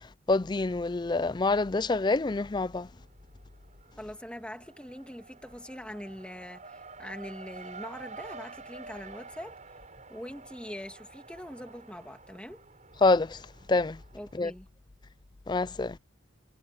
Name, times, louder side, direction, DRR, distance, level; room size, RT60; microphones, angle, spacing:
voice 1, 0.3-2.9 13.0-13.4 13.7-14.0 14.4-14.5 15.5-16.0, left 3 dB, 20° left, 0.4 m, -26 dB
Race car auto racing, 2.0-2.7 3.0-14.4, right 4 dB, 35° right, 5.9 m, -49 dB
voice 2, 4.0-9.6 10.1-12.6 14.1-14.7, equal, 5° left, 2.0 m, -43 dB
head